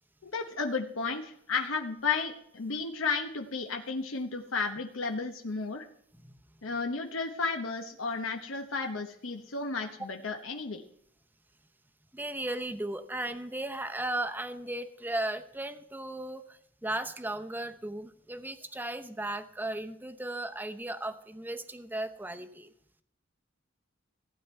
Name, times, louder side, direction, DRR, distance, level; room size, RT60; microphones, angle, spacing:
voice 1, 0.2-5.9 6.6-10.8, left 4 dB, 85° left, 4 dB, 1.0 m, -33 dB
voice 2, 12.1-22.7, right 1 dB, 10° right, 9 dB, 0.8 m, -36 dB
15.5 x 9.3 x 4.4 m, 0.69 s
head